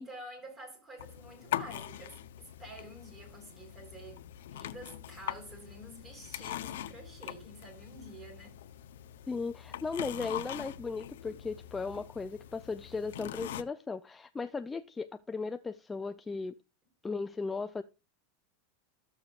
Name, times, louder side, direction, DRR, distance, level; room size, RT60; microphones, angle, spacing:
voice 1, 0.0-4.2 4.5-8.6, right 1 dB, 20° right, 3.8 m, -49 dB
sound 1, 1.0-13.6, left 12 dB, 85° left, 0.6 m, -42 dB
voice 2, 9.3-16.6 17.0-17.8, left 4 dB, 10° left, 0.3 m, -36 dB
13.5 x 6.9 x 2.4 m
supercardioid pair, 155°, 0 cm